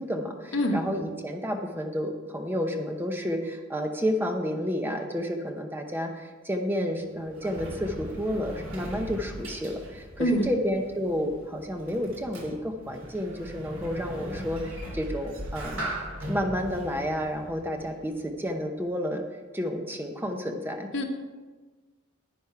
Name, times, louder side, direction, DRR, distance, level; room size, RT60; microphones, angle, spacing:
voice 1, 0.0-15.9 16.3-19.2 19.5-20.9, equal, 10° right, 4 dB, 0.8 m, -30 dB
voice 2, 0.5-0.8 10.2-10.5 20.9-21.0, equal, 75° left, 2 dB, 1.5 m, -24 dB
Sliding door, 6.9-18.3, equal, 70° right, 3.0 m, -39 dB
10.5 x 9.4 x 4.6 m, 1.3 s
head